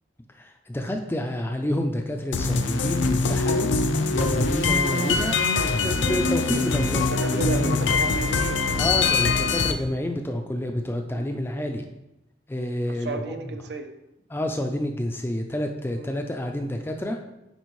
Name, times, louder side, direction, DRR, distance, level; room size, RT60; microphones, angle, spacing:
voice 1, 0.4-3.7 4.1-7.8 8.8-11.8 12.5-13.2 14.3-17.2, left 1 dB, 10° left, 4 dB, 0.4 m, -29 dB
sound 1, 2.3-9.7, left 4 dB, 80° left, 0.6 m, -23 dB
voice 2, 7.1-8.6 11.1-11.4 12.9-13.9 16.0-16.2, right 3 dB, 60° right, 7 dB, 0.6 m, -34 dB
9.4 x 4.5 x 3.1 m, 0.90 s
head